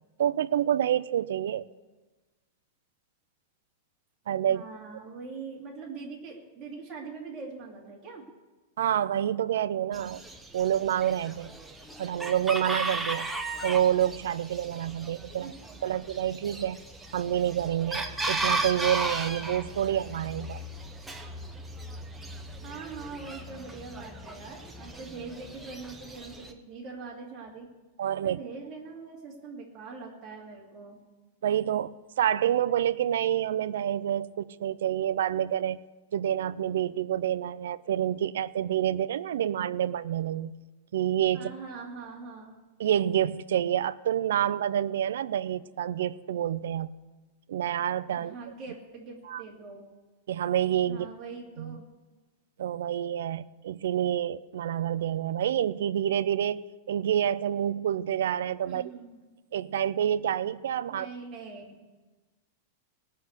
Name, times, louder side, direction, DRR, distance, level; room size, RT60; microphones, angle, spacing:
voice 1, 0.2-1.7 4.3-4.6 8.8-10.2 10.5-11.5 12.0-15.5 15.8-16.8 17.1-20.6 28.0-28.4 31.4-35.8 36.1-40.5 40.9-41.5 42.8-46.9 47.5-48.3 49.3-49.4 50.3-51.1 51.6-51.8 52.6-58.9 59.5-61.1, right 10 dB, 75° right, 16 dB, 0.5 m, -28 dB
voice 2, 4.5-8.2 15.4-15.5 15.8-16.0 22.6-27.7 28.2-31.0 41.3-42.5 48.1-49.8 50.9-51.9 58.7-59.2 60.9-61.8, right 4 dB, 20° right, -3 dB, 2.5 m, -42 dB
Chicken rooster, 9.9-26.5, right 2 dB, 5° right, 0.7 m, -36 dB
18.5 x 6.6 x 8.2 m, 1.2 s
supercardioid pair, 180°, 0 cm